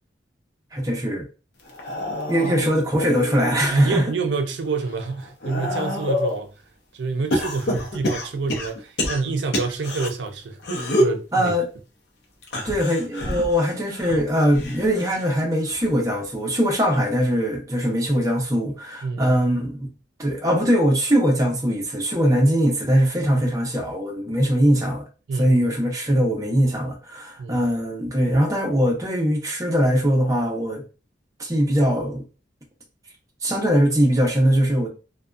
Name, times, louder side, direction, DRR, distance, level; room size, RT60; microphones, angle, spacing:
voice 1, 0.7-1.3 2.3-4.0 11.3-11.7 12.6-19.9 20.2-25.0 25.4-30.8 31.4-32.2 33.4-34.9, equal, 20° right, 0.7 m, -21 dB
sound 1, 1.6-4.0 4.5-6.4 7.3-10.1 10.6-11.2 12.4-15.3 15.7-16.1 17.2-17.3, left 1 dB, 70° left, 0.6 m, -28 dB
voice 2, 3.7-6.5 6.9-10.6 11.0-11.5 19.0-19.4 23.4-23.5 25.3-25.6 27.4-27.6, right 4 dB, 75° right, 0.4 m, -28 dB
2.6 x 2.2 x 2.3 m
head